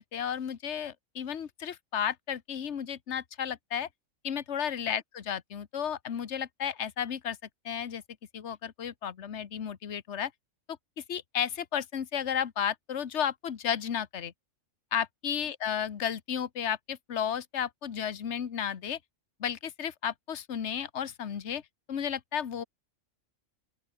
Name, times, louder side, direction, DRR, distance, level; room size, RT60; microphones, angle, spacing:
voice 1, 0.0-3.9 4.2-7.4 7.6-8.0 8.3-10.3 11.1-14.3 14.9-19.0 19.4-21.6 21.9-22.6, left 8 dB, 60° left, 1.4 m, -33 dB
open air
omnidirectional pair, 1.4 m